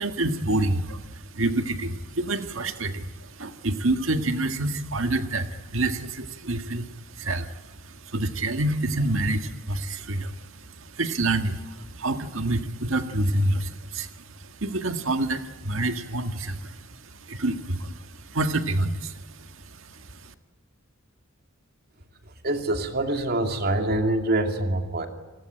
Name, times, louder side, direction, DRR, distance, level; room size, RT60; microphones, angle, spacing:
voice 1, 0.0-20.2, right 2 dB, 70° right, 8 dB, 1.8 m, -28 dB
voice 2, 22.4-25.1, right 1 dB, 50° right, 5 dB, 2.7 m, -25 dB
29.5 x 19.5 x 9.0 m, 1.2 s
head